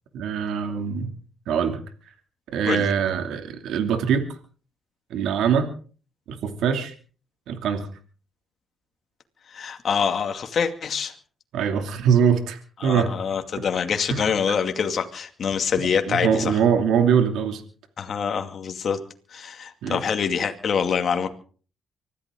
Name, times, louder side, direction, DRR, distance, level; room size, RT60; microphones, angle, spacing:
voice 1, 0.1-1.1 1.5-1.8 2.5-4.2 5.1-5.7 6.3-6.9 7.5-7.9 11.5-13.1 14.1-14.3 16.1-17.6 19.8-20.0, right 7 dB, 80° right, 6 dB, 2.7 m, -22 dB
voice 2, 9.5-11.1 12.8-16.6 18.0-19.0 19.3-21.3, left 6 dB, 55° left, 6 dB, 2.4 m, -25 dB
25.0 x 14.5 x 3.8 m, 0.41 s
cardioid pair, 90°, 0 cm